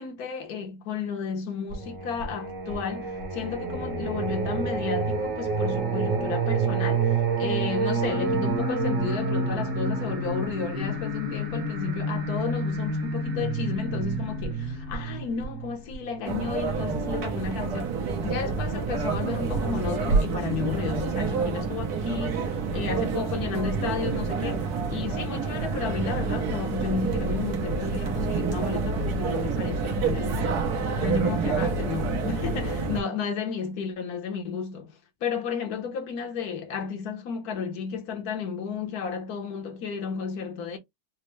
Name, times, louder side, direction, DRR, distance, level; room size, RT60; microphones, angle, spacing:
voice 1, 0.0-30.7 31.0-40.8, left 6 dB, 80° left, 1.4 m, -32 dB
Singing, 1.7-16.4, right 3 dB, 60° right, 1.4 m, -28 dB
sound 1, 16.2-33.0, right 4 dB, 85° right, 1.5 m, -28 dB
4.3 x 2.0 x 3.1 m
omnidirectional pair, 1.6 m